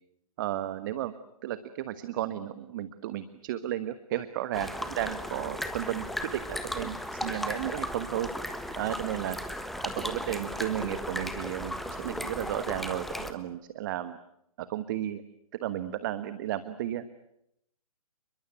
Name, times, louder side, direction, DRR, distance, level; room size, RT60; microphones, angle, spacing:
voice 1, 0.4-1.1 1.4-8.3 8.8-9.4 9.8-14.2 14.6-15.2 15.5-17.1, right 12 dB, 35° right, 13 dB, 1.3 m, -33 dB
sound 1, 4.5-13.3, equal, ahead, 1.4 m, -36 dB
29.5 x 22.5 x 8.2 m, 0.76 s
figure-of-eight pair, 125°, 19 cm